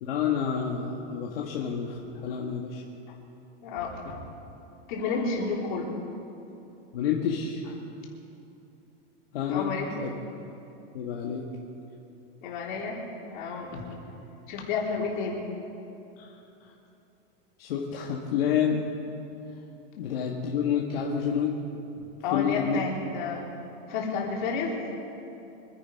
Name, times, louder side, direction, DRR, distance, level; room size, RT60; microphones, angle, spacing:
voice 1, 0.0-2.8 6.9-7.6 9.3-10.1 10.9-11.4 16.2-16.3 16.6-16.7 17.6-18.9 20.0-21.6 22.3-22.8, left 7 dB, 75° left, -1 dB, 1.7 m, -29 dB
voice 2, 3.6-4.2 4.9-5.9 9.5-9.9 12.4-13.0 13.3-13.8 14.5-15.4 22.2-23.5 23.9-24.7, left 4 dB, 55° left, -2 dB, 3.6 m, -31 dB
25.0 x 10.5 x 5.3 m, 2.8 s
supercardioid pair, 180°, 30 cm